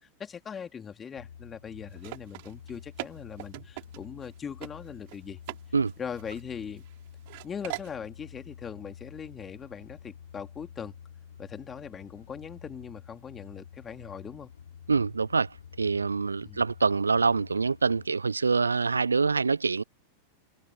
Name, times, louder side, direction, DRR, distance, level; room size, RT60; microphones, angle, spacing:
voice 1, 0.0-5.4 6.0-6.8 7.4-10.9 11.4-14.5 16.4-16.6, left 7 dB, 20° left, 2.9 m, -40 dB
sound 1, 1.2-18.1, left 8 dB, 65° left, 5.9 m, -49 dB
sound 2, 1.9-4.3 4.6-4.7 5.1-5.6 5.9-6.9 7.3-7.9, right 25 dB, 50° right, 3.8 m, -41 dB
voice 2, 14.9-19.8, right 4 dB, 75° right, 0.9 m, -25 dB
figure-of-eight pair, 90°, 0 cm